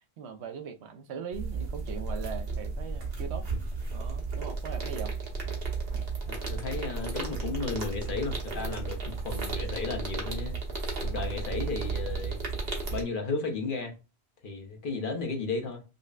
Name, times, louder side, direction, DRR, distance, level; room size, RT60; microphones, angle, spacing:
voice 1, 0.2-3.5 3.9-5.2, right 6 dB, 80° right, 0.9 m, -40 dB
sound 1, 1.3-13.0, right 4 dB, 60° right, 1.2 m, -33 dB
voice 2, 6.3-10.5 11.0-12.4 12.9-14.0 14.4-15.8, left 4 dB, 55° left, 0.9 m, -34 dB
5.2 x 2.1 x 2.4 m
omnidirectional pair, 1.1 m